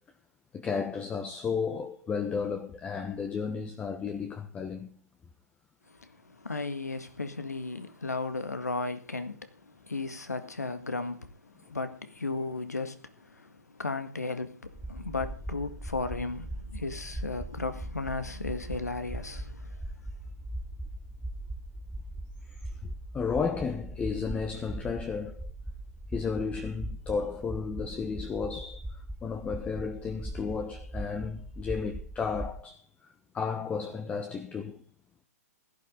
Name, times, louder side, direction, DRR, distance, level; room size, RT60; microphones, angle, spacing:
voice 1, 0.5-5.0 22.5-25.5 26.1-34.8, left 5 dB, 15° left, 1.0 m, -33 dB
voice 2, 5.9-13.5 13.8-19.7, left 3 dB, 90° left, 1.8 m, -35 dB
sound 1, 14.7-32.6, right 1 dB, 5° right, 0.6 m, -40 dB
16.5 x 11.5 x 3.9 m
figure-of-eight pair, 120°, 9 cm